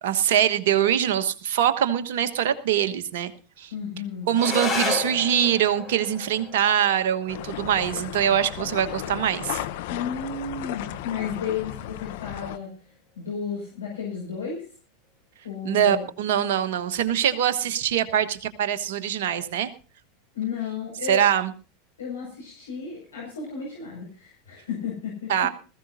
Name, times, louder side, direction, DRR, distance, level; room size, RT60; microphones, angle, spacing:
voice 1, 0.0-3.3 3.6-3.7 4.3-9.6 15.6-19.7 21.1-21.5 25.3-25.5, right 9 dB, 60° right, 9 dB, 1.3 m, -23 dB
voice 2, 3.7-4.3 9.9-12.7 13.2-14.6 15.4-16.0 20.3-21.2 22.0-25.3, left 6 dB, 75° left, -3 dB, 5.8 m, -33 dB
sound 1, 4.3-13.3, left 3 dB, 20° left, 5.6 m, -35 dB
sound 2, 7.3-12.6, left 13 dB, 60° left, 0.9 m, -35 dB
20.0 x 14.5 x 2.7 m, 0.36 s
figure-of-eight pair, 85°, 0 cm